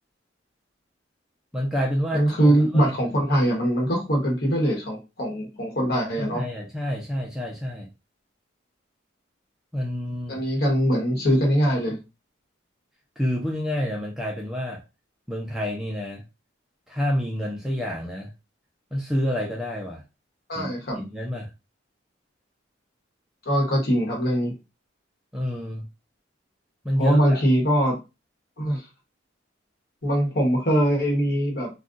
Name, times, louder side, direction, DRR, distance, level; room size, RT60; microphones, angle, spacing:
voice 1, 1.5-2.9 6.2-7.9 9.7-10.5 13.2-14.8 15.3-16.2 16.9-18.3 18.9-20.0 20.6-21.5 25.3-25.9 26.8-27.4, equal, ahead, -1 dB, 0.4 m, -28 dB
voice 2, 2.1-6.4 10.3-12.0 20.5-21.0 23.5-24.6 27.0-28.0 28.6-28.8 30.0-31.7, equal, 50° left, -1 dB, 1.1 m, -22 dB
2.4 x 2.2 x 3.7 m, 0.27 s
head